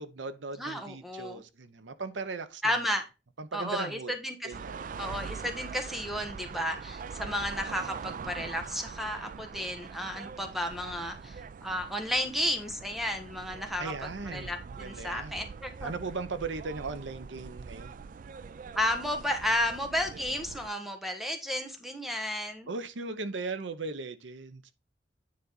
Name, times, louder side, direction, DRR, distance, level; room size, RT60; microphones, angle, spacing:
voice 1, 0.0-2.7 3.4-4.1 4.4-4.9 13.8-18.0 22.7-24.7, right 3 dB, 80° right, 0.8 m, -38 dB
voice 2, 0.6-1.4 2.6-3.0 3.5-4.5 5.0-13.9 14.3-15.9 18.7-22.7, left 1 dB, ahead, 1.2 m, -33 dB
sound 1, 4.5-20.7, right 5 dB, 45° right, 0.3 m, -43 dB
9.5 x 4.0 x 3.9 m
head